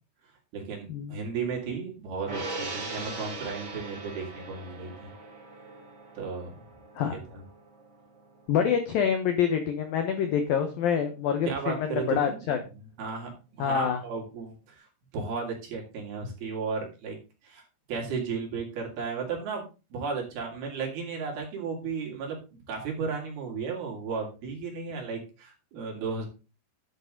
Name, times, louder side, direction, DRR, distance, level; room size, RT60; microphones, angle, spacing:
voice 1, 0.5-5.1 6.2-6.6 7.0-7.4 11.5-12.5 13.0-13.3 13.6-14.9 15.1-17.2 17.4-17.6 17.9-19.6 19.9-22.4 22.7-26.3, right 5 dB, 55° right, 0 dB, 4.2 m, -34 dB
Gong, 2.3-8.9 9.2-9.4, right 2 dB, 35° right, 3.7 m, -40 dB
voice 2, 8.5-12.6 13.6-14.0, left 8 dB, 90° left, 7 dB, 2.0 m, -26 dB
11.0 x 8.2 x 3.9 m, 0.31 s
omnidirectional pair, 5.8 m